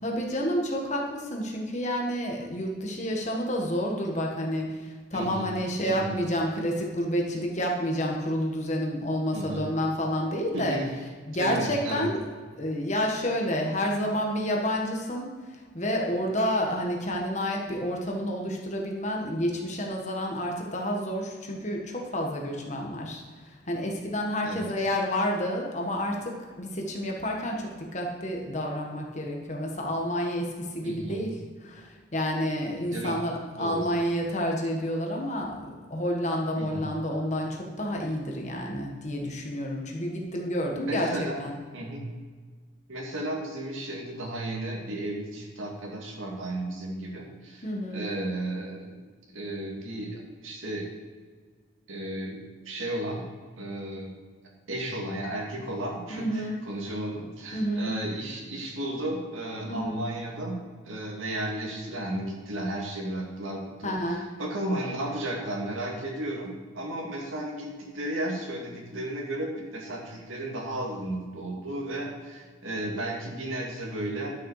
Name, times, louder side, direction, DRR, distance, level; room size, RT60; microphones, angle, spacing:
voice 1, 0.0-10.8 11.3-12.3 12.6-15.3 15.7-23.2 23.7-31.3 31.6-41.1 41.4-41.5 47.6-48.0 56.1-56.6 57.5-57.9 59.6-60.0 63.8-64.2, equal, 35° left, 0 dB, 1.6 m, -29 dB
voice 2, 5.1-5.5 5.8-6.2 9.3-9.6 10.5-10.9 11.4-12.1 24.4-24.9 30.8-31.3 32.9-33.2 33.6-33.9 36.6-36.9 40.7-41.4 41.7-42.0 42.9-48.9 49.3-50.9 51.9-52.4 52.7-53.3 53.6-54.1 54.7-60.6 60.9-74.4, right 1 dB, 85° right, -1 dB, 2.4 m, -34 dB
11.5 x 6.6 x 4.9 m, 1.5 s
head